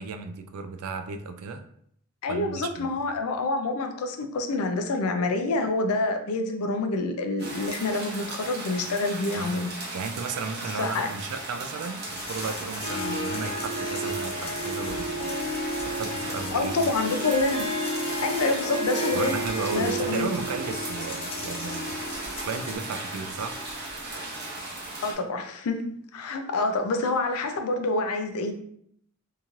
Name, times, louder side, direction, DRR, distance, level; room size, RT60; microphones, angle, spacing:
voice 1, 0.0-1.6 2.3-2.9 9.4-9.5 9.9-15.3 15.8-16.9 19.1-22.0 22.4-23.6, right 4 dB, 85° right, 8 dB, 0.4 m, -34 dB
voice 2, 2.2-9.7 10.8-11.1 16.5-17.7 18.2-19.4 19.7-20.3 25.0-28.5, left 2 dB, 85° left, 6 dB, 0.4 m, -27 dB
sound 1, 7.4-25.1, right 2 dB, 50° right, 0.8 m, -37 dB
sound 2, 12.1-22.8, left 3 dB, 25° left, 0.5 m, -40 dB
Harp, 12.7-24.6, right 1 dB, 65° right, 1.2 m, -33 dB
2.9 x 2.8 x 2.4 m, 0.67 s
head